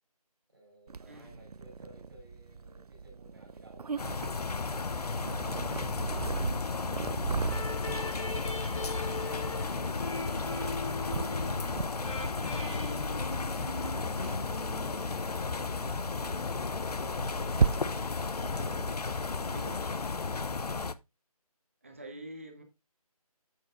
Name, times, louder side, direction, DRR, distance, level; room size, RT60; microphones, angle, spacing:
voice 1, 0.5-7.4 8.1-14.2 14.9-18.1, right 1 dB, 35° right, 3.4 m, -57 dB
Purr, 0.9-19.6, right 5 dB, 85° right, 0.5 m, -38 dB
voice 2, 1.1-1.4 19.5-19.8 21.8-22.6, right 1 dB, 20° right, 1.0 m, -45 dB
sound 1, 4.0-20.9, left 4 dB, 85° left, 0.7 m, -34 dB
sound 2, 7.5-16.0, left 2 dB, 60° left, 2.3 m, -41 dB
9.0 x 7.9 x 2.5 m
figure-of-eight pair, 175°, 19 cm